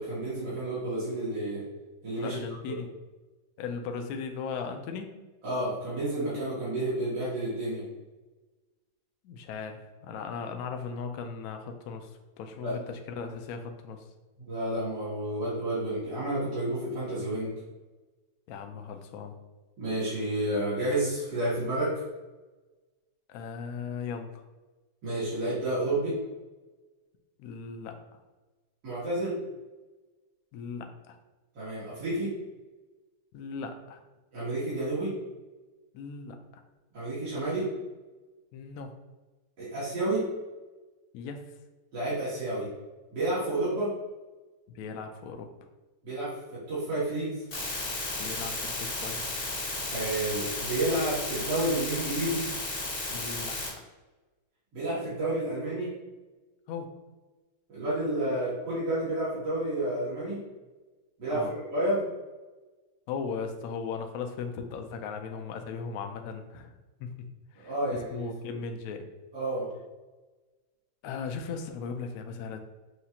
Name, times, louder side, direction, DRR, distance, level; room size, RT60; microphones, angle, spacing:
voice 1, 0.0-1.6 2.0-2.4 5.4-7.8 12.6-12.7 14.5-17.5 19.8-21.9 25.0-26.1 28.8-29.3 31.6-32.3 34.3-35.1 36.9-37.6 39.6-40.2 41.9-42.7 43.1-43.9 46.0-46.3 46.7-47.4 49.9-52.5 54.7-55.9 57.7-60.4 61.2-62.0 67.6-68.6 69.3-69.7, right 1 dB, 75° right, -12 dB, 2.4 m, -30 dB
voice 2, 2.2-2.9 3.6-5.2 9.2-12.1 12.4-14.0 18.5-19.3 23.3-24.4 27.4-28.0 30.5-31.2 33.3-34.0 35.9-36.6 38.5-38.9 41.1-41.4 44.7-45.5 48.2-49.3 53.1-53.6 56.7-56.9 61.3-61.6 63.1-66.7 67.0-67.3 67.5-69.1 71.0-72.6, left 5 dB, 70° left, 5 dB, 0.9 m, -37 dB
sound 1, 47.5-53.7, left 2 dB, 45° left, 1.6 m, -34 dB
6.5 x 2.4 x 2.8 m, 1.2 s
omnidirectional pair, 1.9 m